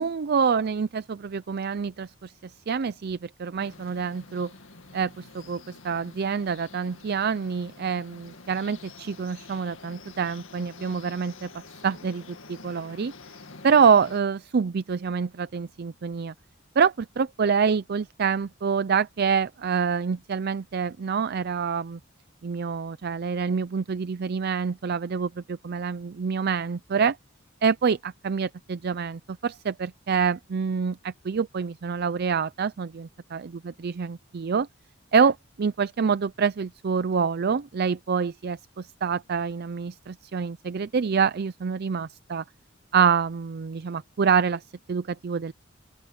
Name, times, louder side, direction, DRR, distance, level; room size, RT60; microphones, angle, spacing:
voice 1, 0.0-4.5 4.9-11.5 11.8-13.1 13.6-16.3 16.8-22.0 22.4-27.2 27.6-34.7 35.1-42.4 42.9-44.6 44.9-45.5, right 6 dB, 55° right, 0.4 m, -26 dB
sound 1, 3.6-14.2, left 3 dB, 85° left, 2.1 m, -48 dB
open air
head